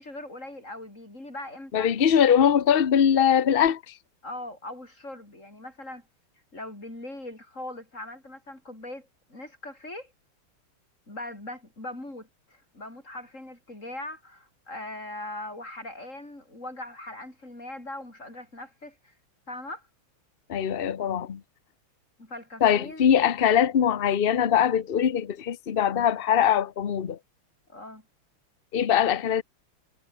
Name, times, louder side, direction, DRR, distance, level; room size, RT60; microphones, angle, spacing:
voice 1, 0.0-1.9 4.2-6.1 6.5-10.1 11.1-19.2 19.5-19.9 22.2-23.1 27.7-28.1, left 1 dB, 30° left, 8.1 m, -40 dB
voice 2, 1.7-3.9 20.5-21.4 22.6-27.2 28.7-29.4, left 8 dB, 75° left, 0.5 m, -22 dB
omnidirectional pair, 2.4 m